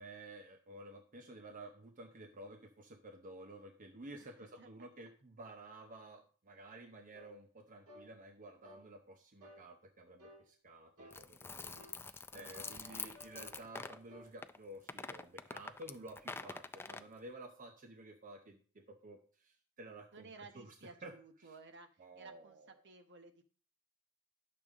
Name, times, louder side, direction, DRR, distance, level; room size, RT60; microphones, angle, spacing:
voice 1, 0.0-20.7 21.0-21.5 22.0-22.7, right 1 dB, 40° right, 4 dB, 0.8 m, -53 dB
voice 2, 4.2-4.9 12.3-13.2 20.1-23.4, right 3 dB, 55° right, 6 dB, 1.1 m, -57 dB
sound 1, 7.1-7.3 7.9-8.1 8.6-8.9 9.4-9.7 10.2-10.4 11.0-11.2 11.8-12.0 12.5-14.3, equal, 85° right, 2.3 m, -57 dB
sound 2, 11.1-14.0 14.4-14.6 14.9-17.1, left 4 dB, 10° left, 0.4 m, -46 dB
10.5 x 6.9 x 3.6 m, 0.41 s
head